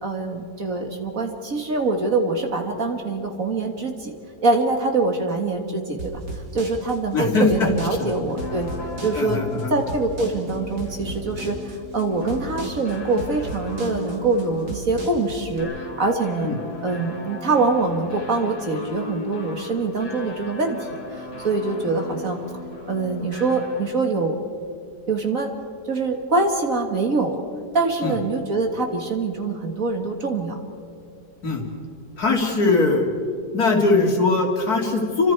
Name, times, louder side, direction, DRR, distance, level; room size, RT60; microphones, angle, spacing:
voice 1, 0.0-4.1 4.4-6.1 6.5-8.7 9.0-9.4 9.7-16.5 16.8-22.4 22.9-24.4 25.1-25.5 25.9-27.4 27.7-30.6, right 3 dB, 45° right, 3 dB, 2.0 m, -24 dB
sound 1, 6.0-15.6, right 2 dB, 70° right, 4.0 m, -35 dB
voice 2, 7.1-7.7 8.0-8.1 9.2-9.7 16.4-16.6 28.0-28.1 31.4-31.6 32.2-33.1 33.5-35.3, left 3 dB, 50° left, 1 dB, 3.0 m, -20 dB
sound 2, 7.3-24.1, left 2 dB, 90° left, 3.1 m, -37 dB
29.5 x 25.0 x 4.7 m, 2.4 s
omnidirectional pair, 2.0 m